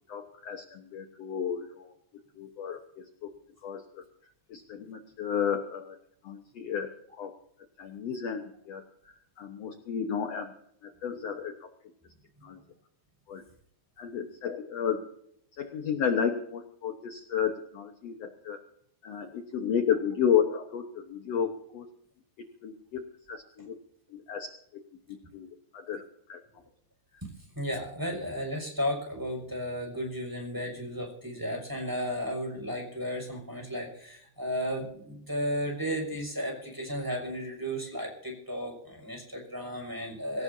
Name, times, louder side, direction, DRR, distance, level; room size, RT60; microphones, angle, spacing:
voice 1, 0.1-1.9 2.4-3.3 3.6-4.0 4.5-6.0 6.2-6.9 7.2-7.3 7.8-8.8 9.4-10.5 10.8-11.7 12.4-12.6 13.3-13.4 14.0-15.0 15.6-18.6 19.0-21.9 22.6-23.7 24.1-24.5 25.3-25.5 25.7-26.0 26.3-26.4, left 7 dB, 65° left, 5 dB, 1.7 m, -32 dB
voice 2, 27.6-40.4, equal, 5° right, 0 dB, 5.7 m, -34 dB
26.0 x 16.0 x 2.8 m, 0.70 s
omnidirectional pair, 4.4 m